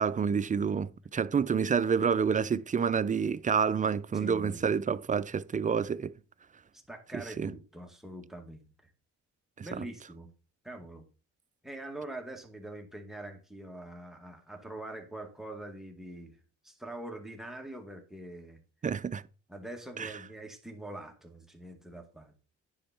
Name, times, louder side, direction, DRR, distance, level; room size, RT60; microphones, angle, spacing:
voice 1, 0.0-6.1 7.1-7.5 9.6-9.8 18.8-19.2 20.0-20.1, right 6 dB, 25° right, 0.4 m, -28 dB
voice 2, 4.1-4.7 6.7-8.7 9.6-10.3 10.6-11.0 11.6-18.6 19.5-22.3, right 1 dB, ahead, 2.2 m, -44 dB
10.0 x 5.3 x 4.4 m
cardioid pair, 90°, 30 cm